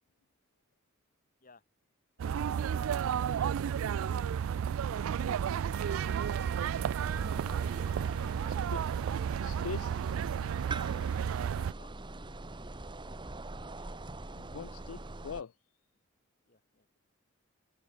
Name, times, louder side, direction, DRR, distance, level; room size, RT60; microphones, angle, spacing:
voice 1, 2.2-3.5 3.9-4.4 4.8-6.0 7.4-8.4 11.0-12.0 12.2-12.3 16.5-17.0, left 3 dB, 40° left, 2.7 m, -58 dB
sound 1, 2.2-11.7, right 8 dB, 70° right, 0.3 m, -32 dB
sound 2, 5.7-9.4, right 7 dB, 50° right, 1.3 m, -48 dB
sound 3, 7.0-15.4, right 2 dB, 20° right, 1.2 m, -43 dB
voice 2, 9.4-10.1 13.8-14.0 14.3-15.6, left 6 dB, 75° left, 0.5 m, -43 dB
head